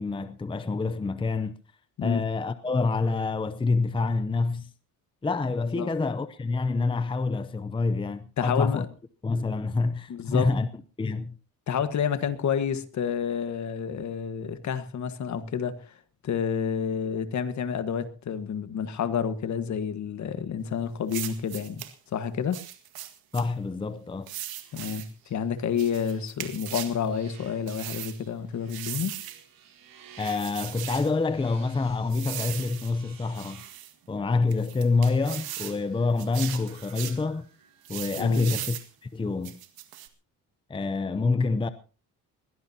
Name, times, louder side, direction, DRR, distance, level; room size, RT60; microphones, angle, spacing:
voice 1, 0.0-1.6 2.0-4.7 5.2-8.8 9.2-10.7 11.0-11.3 23.3-24.3 30.2-33.6 34.1-37.4 37.9-39.6 40.7-41.7, left 3 dB, 15° left, 0.7 m, -27 dB
voice 2, 8.4-8.9 10.1-10.5 11.7-15.9 16.2-21.8 22.1-22.6 24.7-29.2 38.2-38.6, left 7 dB, 50° left, 1.5 m, -29 dB
sound 1, 21.1-21.9 22.5-23.5 24.3-25.1 25.8-27.0 27.7-28.2 28.7-29.4 30.2-31.1 32.1-32.9 33.4-33.9 34.5-35.8 36.2-37.2 37.9-38.9 39.4-40.1, right 13 dB, 85° right, 1.9 m, -38 dB
sound 2, 23.3-39.2, right 7 dB, 70° right, 4.1 m, -55 dB
21.5 x 16.5 x 2.8 m
cardioid pair, 130°, 35 cm